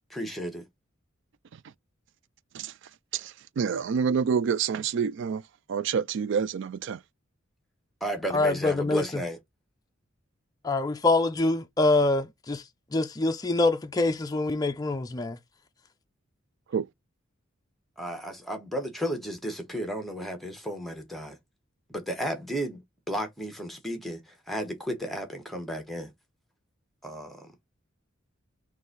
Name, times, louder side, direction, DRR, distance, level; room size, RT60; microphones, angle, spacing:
voice 1, 0.1-0.6 8.0-9.4 18.0-21.4 21.9-22.8 23.1-26.1 27.0-27.5, equal, ahead, 1.0 m, -33 dB
voice 2, 3.1-5.4 5.7-7.0 16.7-16.9, right 6 dB, 65° right, 0.3 m, -27 dB
voice 3, 8.3-9.2 10.6-12.6 12.9-15.4, left 2 dB, 20° left, 0.4 m, -25 dB
3.8 x 2.6 x 3.9 m
head